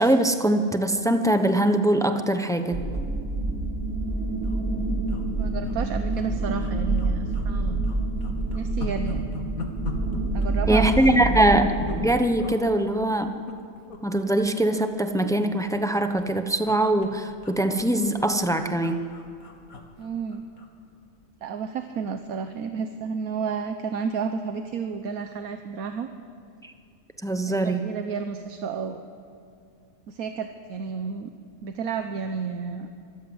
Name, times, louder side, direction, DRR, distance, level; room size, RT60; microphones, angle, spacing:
voice 1, 0.0-2.8 10.7-13.4 14.0-19.0 26.6-26.7 27.2-27.8, right 1 dB, 5° left, 7 dB, 0.8 m, -22 dB
sound 1, 2.7-12.0, right 2 dB, 55° right, 5.4 m, -27 dB
sound 2, 3.6-3.8 4.1-4.2 4.4-4.6 5.1-5.8 6.1-6.2 6.6-7.5 7.8-12.1 12.4-12.6 13.2-14.0 14.3-14.5 14.8-15.9 16.2-20.7 21.1-21.2, left 2 dB, 70° left, 2.3 m, -40 dB
voice 2, 5.3-7.8 8.5-9.2 10.3-11.0 11.2-11.4 20.0-20.4 21.4-26.1 27.5-29.0 30.1-31.3 31.6-32.9, right 6 dB, 75° right, 7 dB, 1.3 m, -31 dB
24.5 x 14.0 x 7.9 m, 2.4 s
omnidirectional pair, 1.6 m